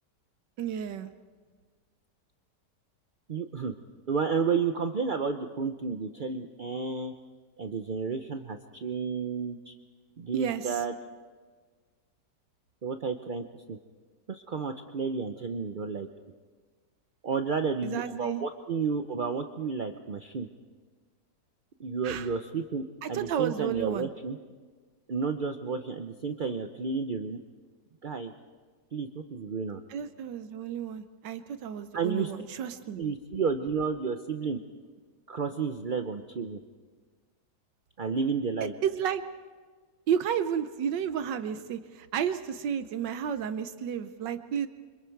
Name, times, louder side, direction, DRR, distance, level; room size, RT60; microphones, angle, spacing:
voice 1, 0.6-1.1 10.3-10.8 17.8-18.4 22.0-22.3 23.0-24.1 29.9-33.0 38.8-39.2 40.1-44.7, right 8 dB, 85° right, 10 dB, 1.5 m, -32 dB
voice 2, 3.3-3.7 4.1-7.1 7.6-9.7 10.2-10.9 12.8-13.8 14.3-16.1 17.2-20.5 21.8-24.4 25.1-27.4 28.0-28.3 28.9-29.8 31.9-32.3 33.0-34.6 35.3-36.6 38.0-38.7, right 5 dB, 45° right, 6 dB, 0.6 m, -31 dB
28.5 x 25.0 x 4.6 m, 1.5 s
omnidirectional pair, 1.9 m